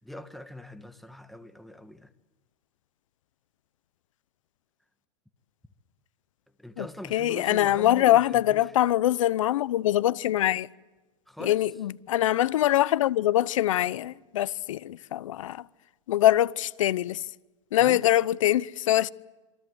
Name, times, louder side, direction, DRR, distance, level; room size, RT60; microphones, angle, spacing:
voice 1, 0.0-2.1 6.6-8.8 11.3-11.7 17.8-18.1, left 1 dB, ahead, 1.5 m, -42 dB
voice 2, 7.1-10.7 11.4-15.6 16.1-17.2 17.7-19.1, left 13 dB, 80° left, 0.8 m, -23 dB
27.0 x 23.0 x 8.0 m
supercardioid pair, 130°, 16 cm